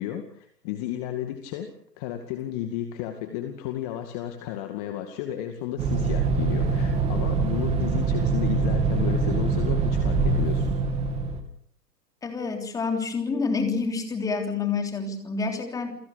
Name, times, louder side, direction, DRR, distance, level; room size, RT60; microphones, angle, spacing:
voice 1, 0.0-10.7, left 11 dB, 25° left, 7 dB, 2.2 m, -33 dB
sound 1, 5.8-11.4, right 4 dB, 10° right, 2.5 m, -24 dB
voice 2, 12.2-15.9, left 4 dB, 5° left, 5 dB, 3.5 m, -28 dB
29.0 x 22.0 x 6.8 m, 0.65 s
figure-of-eight pair, 130°, 49 cm